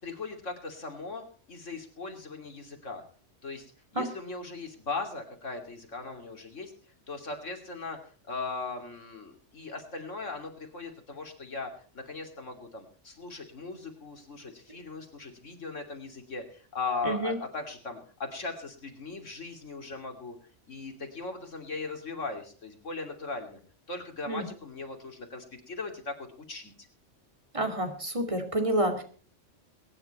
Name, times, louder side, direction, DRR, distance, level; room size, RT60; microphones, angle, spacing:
voice 1, 0.0-3.0 3.4-3.7 3.9-6.7 7.1-8.0 8.3-20.4 20.7-23.6 23.9-26.1 26.5-26.7, left 3 dB, 90° left, 4 dB, 3.3 m, -38 dB
voice 2, 17.0-17.4 24.3-24.5 27.5-29.0, right 1 dB, 25° right, 5 dB, 2.5 m, -28 dB
22.0 x 10.5 x 4.3 m, 0.41 s
omnidirectional pair, 1.2 m